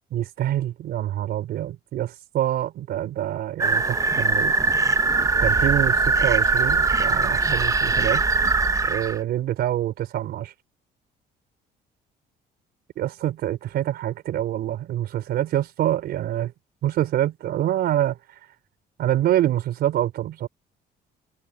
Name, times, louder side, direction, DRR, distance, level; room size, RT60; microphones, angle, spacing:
voice 1, 0.1-4.6 5.4-8.2 8.9-10.5 13.0-16.5 16.8-18.2 19.0-20.5, right 12 dB, 70° right, 3.8 m, -26 dB
sound 1, 3.6-9.2, right 3 dB, 20° right, 0.6 m, -21 dB
cardioid pair, 110°, 17 cm